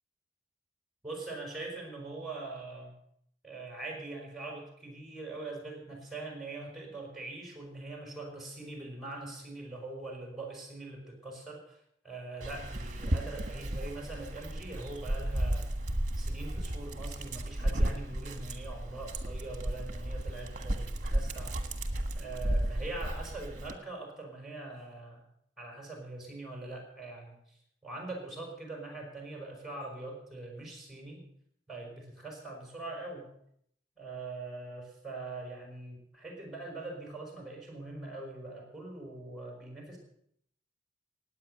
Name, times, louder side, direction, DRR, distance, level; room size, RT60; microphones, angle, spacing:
voice 1, 1.0-2.9 3.4-15.7 16.2-21.6 22.2-25.2 25.6-31.3 31.7-33.3 34.0-40.0, right 2 dB, ahead, 0 dB, 5.5 m, -43 dB
Dog, 12.4-23.8, right 1 dB, 40° right, 1.5 m, -34 dB
17.0 x 9.6 x 6.8 m, 0.70 s
head